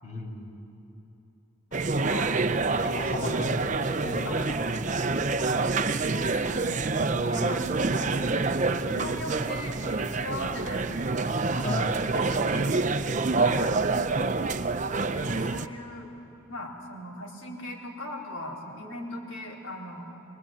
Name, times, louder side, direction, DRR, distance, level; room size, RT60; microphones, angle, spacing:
voice 1, 0.0-0.4 1.8-2.0 2.9-3.6 4.0-4.5 11.6-12.7, left 1 dB, 40° left, 0 dB, 3.7 m, -34 dB
voice 2, 1.7-2.3 3.1-3.4 4.2-4.4 5.4-5.7 6.1-11.7 13.4-13.7 15.0-16.1 16.5-20.1, left 1 dB, 70° left, -2 dB, 4.0 m, -39 dB
sound 1, 1.7-15.7, right 3 dB, 35° right, 0.5 m, -27 dB
24.0 x 20.5 x 8.8 m, 2.9 s
head